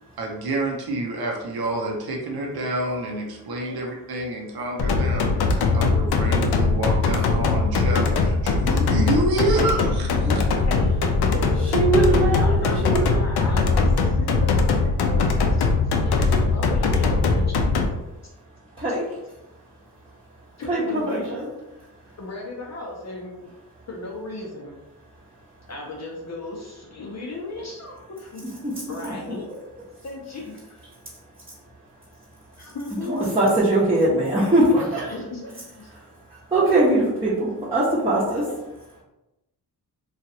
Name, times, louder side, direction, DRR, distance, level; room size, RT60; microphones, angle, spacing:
voice 1, 0.2-10.1 10.3-10.4, right 2 dB, 65° right, 0 dB, 0.8 m, -28 dB
sound 1, 4.8-17.9, left 3 dB, 75° left, 0.5 m, -21 dB
voice 2, 10.7-11.9 12.4-15.7 16.0-17.5 20.6-21.5 22.2-23.5 23.9-24.8 25.7-28.4 28.9-29.5 30.0-30.8 32.6-33.2 35.1-35.9 38.3-38.5, left 2 dB, 40° left, -2 dB, 0.7 m, -36 dB
voice 3, 11.6-13.2 18.8-19.1 20.7-21.5 28.6-28.7 29.0-29.1 33.0-35.1 36.3-38.4, right 2 dB, 15° right, -11 dB, 1.0 m, -21 dB
3.0 x 2.4 x 2.8 m, 0.94 s
cardioid pair, 70°, 39 cm